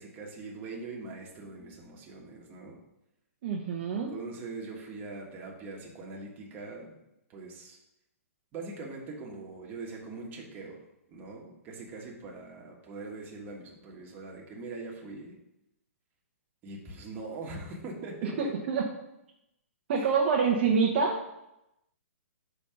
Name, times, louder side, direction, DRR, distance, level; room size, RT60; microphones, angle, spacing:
voice 1, 0.0-2.8 3.9-7.0 7.3-7.8 8.5-10.8 11.1-15.4 16.6-18.5 19.9-20.1, right 3 dB, 25° right, -1 dB, 1.4 m, -42 dB
voice 2, 3.4-4.1 18.2-18.8 19.9-21.2, right 5 dB, 50° right, -1 dB, 0.9 m, -26 dB
5.4 x 4.1 x 5.7 m, 0.87 s
hypercardioid pair, 145°, 8 cm